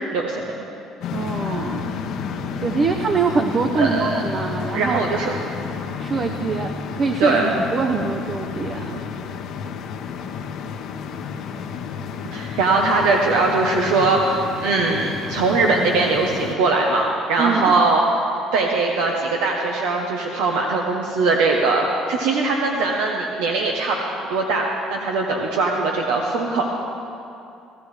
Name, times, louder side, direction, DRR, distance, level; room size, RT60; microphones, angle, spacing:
voice 1, 0.1-0.5 3.8-4.2 4.7-5.3 7.2-7.5 12.3-18.0 18.5-24.0 24.3-26.7, right 3 dB, 85° right, 0 dB, 1.0 m, -21 dB
sound 1, 1.0-16.6, left 6 dB, 65° left, 0.8 m, -31 dB
voice 2, 1.1-2.0 2.6-5.1 6.0-9.1 17.4-17.8, right 4 dB, 40° right, 5 dB, 0.7 m, -24 dB
17.0 x 13.0 x 3.3 m, 2.6 s
cardioid pair, 100°, 0 cm